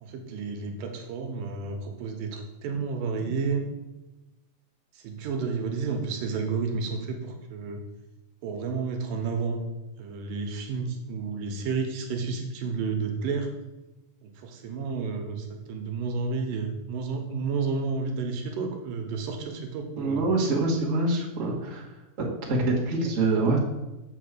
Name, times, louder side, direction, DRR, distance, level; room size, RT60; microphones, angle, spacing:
voice 1, 0.0-3.6 4.9-7.8 8.4-9.6 10.0-13.5 14.2-20.3, right 4 dB, 80° right, 3 dB, 2.5 m, -31 dB
voice 2, 20.0-21.8 22.5-23.6, right 2 dB, 40° right, -4 dB, 1.0 m, -25 dB
6.7 x 4.7 x 6.6 m, 1.0 s
omnidirectional pair, 4.1 m